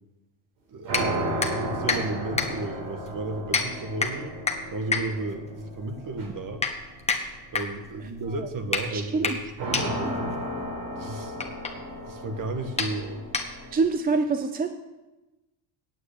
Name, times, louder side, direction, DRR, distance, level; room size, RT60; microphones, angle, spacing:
voice 1, 0.7-4.3 4.7-6.6 7.5-10.4 11.0-11.4 12.1-13.2, right 2 dB, 40° right, 7 dB, 1.5 m, -34 dB
sound 1, 0.8-7.1 9.6-13.8, right 1 dB, 75° right, 5.0 m, -34 dB
sound 2, 0.9-13.9, left 4 dB, 15° left, 1.3 m, -32 dB
voice 2, 8.9-9.4 9.6-10.1 13.7-14.7, right 4 dB, 20° right, 8 dB, 0.5 m, -27 dB
9.5 x 8.0 x 8.4 m, 1.1 s
cardioid pair, 120°, 49 cm